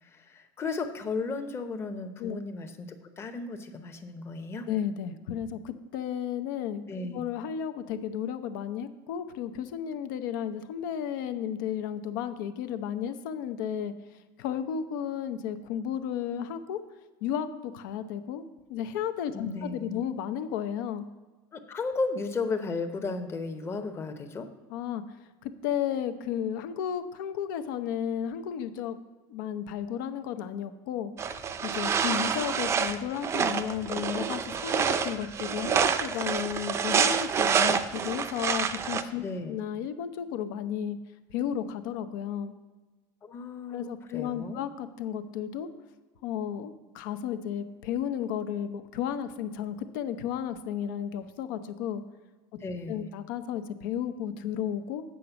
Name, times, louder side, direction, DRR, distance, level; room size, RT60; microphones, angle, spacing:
voice 1, 0.0-4.7 6.9-7.2 19.3-20.0 21.5-24.5 39.2-39.6 43.2-44.6 52.6-53.1, left 3 dB, 25° left, 8 dB, 0.8 m, -34 dB
voice 2, 4.7-6.8 7.1-13.9 14.4-16.8 17.2-18.4 18.7-21.0 24.7-25.2 25.4-29.0 29.3-31.1 31.6-41.0 41.3-42.5 43.7-45.7 46.2-52.0 52.9-55.0, left 9 dB, 80° left, 10 dB, 0.8 m, -33 dB
sound 1, 31.2-39.0, right 6 dB, 25° right, 0.5 m, -27 dB
8.5 x 5.1 x 7.0 m, 1.2 s
supercardioid pair, 140°, 11 cm